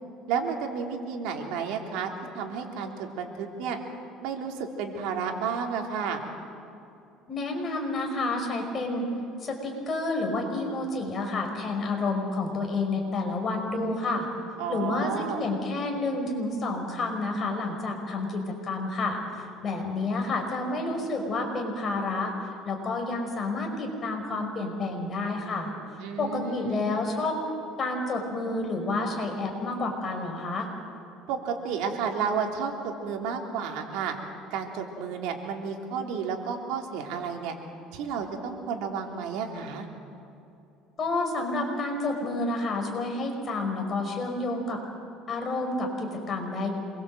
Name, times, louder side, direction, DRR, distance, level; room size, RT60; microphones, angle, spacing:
voice 1, 0.3-3.8 4.2-6.2 14.6-15.4 26.0-26.8 31.3-34.2 34.5-37.5 37.9-39.9, right 6 dB, 75° right, 2 dB, 3.3 m, -31 dB
voice 2, 7.3-9.0 9.4-14.3 14.7-27.4 27.8-30.7 41.0-44.8 45.3-46.7, left 2 dB, 30° left, 2 dB, 5.4 m, -30 dB
27.5 x 22.5 x 7.8 m, 2.8 s
cardioid pair, 140°, 0 cm